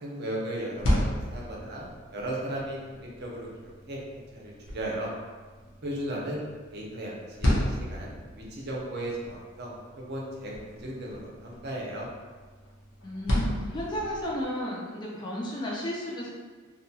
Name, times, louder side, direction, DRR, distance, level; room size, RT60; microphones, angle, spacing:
voice 1, 0.0-3.5 3.9-5.1 5.8-6.4 6.7-12.1, right 1 dB, 55° right, -3 dB, 0.6 m, -36 dB
sound 1, 0.5-14.5, left 1 dB, 70° left, 0.6 m, -34 dB
voice 2, 13.0-16.3, equal, 20° left, -4 dB, 0.4 m, -33 dB
2.8 x 2.2 x 2.7 m, 1.4 s
head